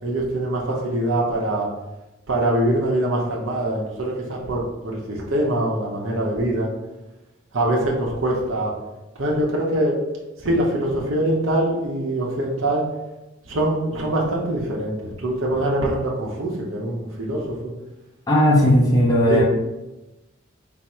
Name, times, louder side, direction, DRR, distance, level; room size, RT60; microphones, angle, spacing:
voice 1, 0.0-1.7 2.3-6.7 7.5-8.7 9.2-10.0 10.4-12.8 13.4-17.6 18.6-18.8 19.3-19.4, right 1 dB, 70° right, -3 dB, 0.7 m, -23 dB
voice 2, 18.3-19.4, left 1 dB, 20° left, -4 dB, 0.6 m, -16 dB
3.5 x 2.0 x 4.2 m, 1.0 s
head